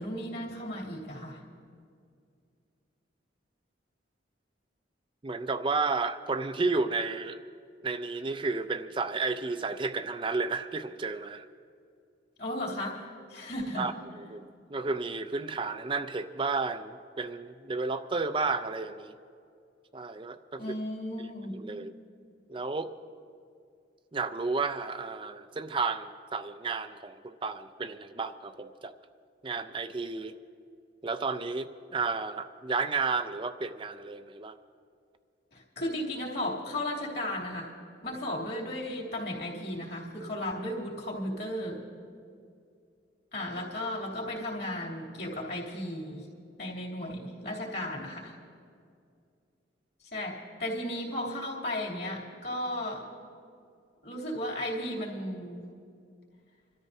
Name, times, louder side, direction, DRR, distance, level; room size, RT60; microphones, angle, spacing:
voice 1, 0.0-1.4 12.4-13.9 20.6-21.7 35.5-37.7 38.0-41.8 43.3-46.3 46.6-48.3 50.0-53.1 54.0-55.7, left 1 dB, 55° left, -3 dB, 2.9 m, -35 dB
voice 2, 5.2-7.4 7.8-11.5 13.8-19.1 19.9-20.6 21.5-21.9 22.5-22.9 24.1-28.9 29.4-30.4 31.0-34.6, right 4 dB, 25° right, 11 dB, 0.4 m, -32 dB
26.5 x 13.0 x 2.7 m, 2.4 s
head